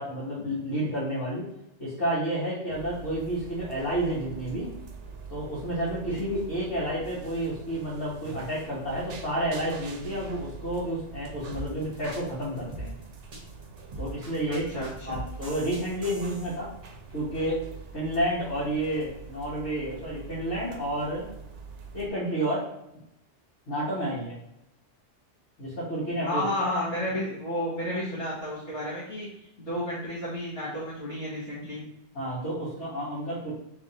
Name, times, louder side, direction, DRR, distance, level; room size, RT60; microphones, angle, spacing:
voice 1, 0.0-1.5 1.8-4.7 5.3-12.9 14.0-14.7 15.1-16.7 17.1-17.6 17.9-21.3 21.9-22.6 23.7-24.3 25.6-26.4 32.1-33.5, right 1 dB, 70° left, -12 dB, 1.8 m, -30 dB
sound 1, 2.7-22.1, right 4 dB, 75° right, 1.0 m, -44 dB
sound 2, 11.5-16.6, right 2 dB, 35° right, 1.0 m, -40 dB
voice 2, 14.5-15.2 26.2-29.3 29.6-31.8, left 1 dB, 55° left, -10 dB, 1.5 m, -32 dB
3.5 x 3.2 x 3.9 m, 0.84 s
omnidirectional pair, 1.2 m